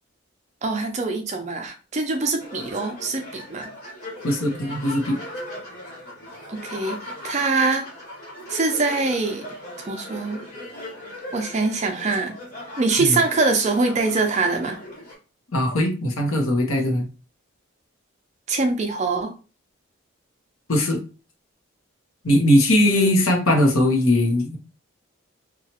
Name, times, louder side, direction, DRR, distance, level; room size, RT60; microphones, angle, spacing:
voice 1, 0.6-3.7 6.5-7.0 7.2-7.9 8.5-9.4 9.8-10.4 11.3-12.3 12.8-14.8 18.5-19.3 22.8-23.1, right 3 dB, 30° right, 5 dB, 0.4 m, -23 dB
sound 1, 2.4-15.1, left 1 dB, 35° left, 1.4 m, -38 dB
voice 2, 4.2-5.2 13.0-13.2 15.5-17.1 20.7-21.0 22.2-24.6, left 1 dB, 75° left, 3 dB, 0.8 m, -20 dB
2.9 x 2.3 x 2.8 m, 0.34 s
head